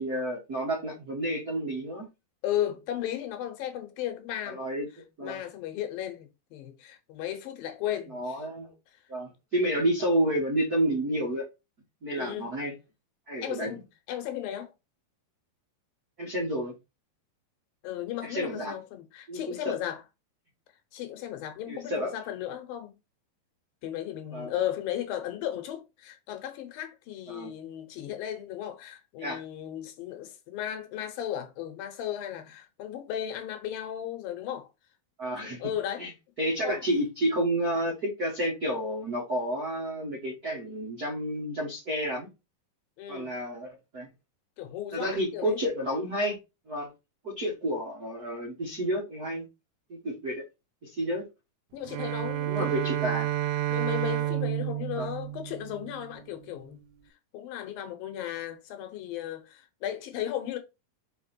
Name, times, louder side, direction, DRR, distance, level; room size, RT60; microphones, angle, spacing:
voice 1, 0.0-2.1 4.5-4.9 5.2-5.4 8.1-8.7 9.1-11.4 12.0-12.7 13.3-13.7 16.2-16.7 18.2-18.7 19.3-19.7 21.7-22.1 24.3-24.5 27.3-27.5 29.2-29.4 35.2-35.6 36.0-36.1 36.4-42.3 43.1-44.1 44.9-46.4 46.7-46.9 47.2-49.4 49.9-50.4 50.8-51.2 52.5-53.3 55.0-55.1, right 1 dB, 60° right, 1.0 m, -30 dB
voice 2, 2.4-4.6 5.2-8.5 12.2-12.5 13.4-13.8 14.1-14.7 17.8-20.0 20.9-23.0 23.8-34.7 35.4-36.1 36.6-36.8 43.0-43.3 44.6-45.6 51.7-52.7 53.7-56.8 57.3-60.6, left 11 dB, 75° left, 2.4 m, -35 dB
Bowed string instrument, 51.8-56.2, right 13 dB, 85° right, 2.5 m, -30 dB
5.1 x 4.7 x 4.3 m
omnidirectional pair, 4.5 m